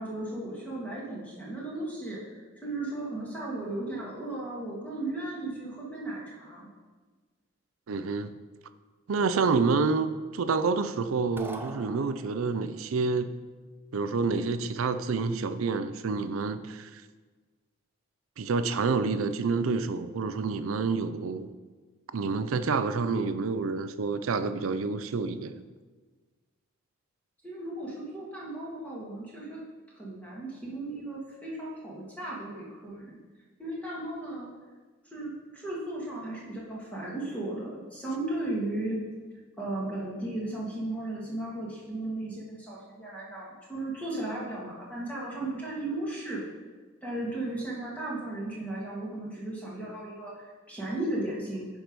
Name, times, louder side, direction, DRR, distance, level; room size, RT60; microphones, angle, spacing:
voice 1, 0.0-6.7 27.4-29.6 30.0-33.2 33.6-34.5 35.0-39.0 39.6-46.4 47.0-51.7, right 2 dB, 5° left, 1.8 m, -35 dB
voice 2, 7.9-8.3 9.1-13.3 13.9-17.0 18.4-21.5 22.1-25.6, right 4 dB, 80° right, 0.5 m, -28 dB
sound 1, 11.4-12.7, right 2 dB, 10° right, 0.4 m, -43 dB
10.5 x 4.7 x 5.2 m
head